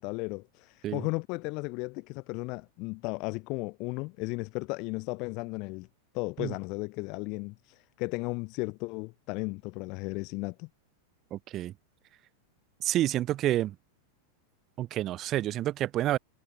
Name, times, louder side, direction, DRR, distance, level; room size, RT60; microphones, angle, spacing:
voice 1, 0.0-5.9 6.1-7.5 8.0-10.7, left 27 dB, 45° left, 4.6 m, -35 dB
voice 2, 11.3-11.7 12.8-13.8 14.8-16.2, right 13 dB, 35° right, 2.2 m, -29 dB
figure-of-eight pair, 90°, 0 cm